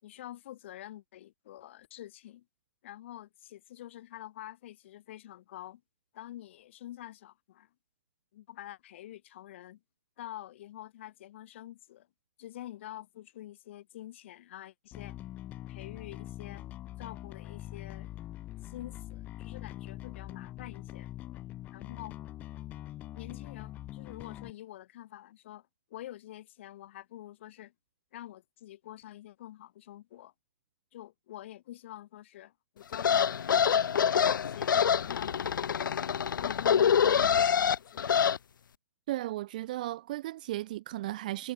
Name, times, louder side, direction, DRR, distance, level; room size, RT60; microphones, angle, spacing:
voice 1, 0.0-2.5 2.8-5.8 6.1-7.7 8.3-9.8 10.2-12.1 12.4-15.2 15.7-16.7 17.0-18.1 18.6-21.1 21.7-22.2 23.2-27.7 28.1-30.3 30.9-36.1 36.4-38.1, left 13 dB, 35° left, 3.5 m, -47 dB
Bass guitar, 14.9-24.5, left 14 dB, 15° left, 2.4 m, -43 dB
sound 1, 32.9-38.4, left 8 dB, 65° left, 0.7 m, -26 dB
voice 2, 39.1-41.5, right 16 dB, 20° right, 0.4 m, -35 dB
hypercardioid pair, 170°, 11 cm